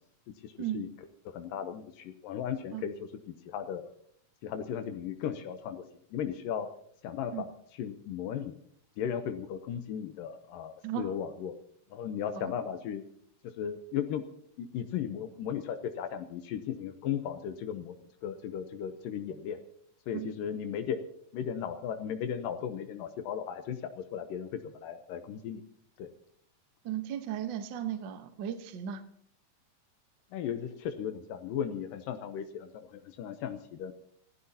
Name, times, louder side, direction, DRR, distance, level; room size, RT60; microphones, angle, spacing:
voice 1, 0.4-0.9 1.3-3.9 4.4-5.8 6.1-6.7 7.0-7.5 7.8-8.6 9.0-11.6 11.9-13.0 13.4-14.3 14.6-18.0 18.2-19.6 20.1-21.0 21.3-25.6 26.0-26.1 30.3-33.9, left 8 dB, 80° left, 8 dB, 2.5 m, -36 dB
voice 2, 26.8-29.0, right 10 dB, 90° right, 8 dB, 1.0 m, -36 dB
28.0 x 15.5 x 2.8 m, 0.65 s
omnidirectional pair, 3.9 m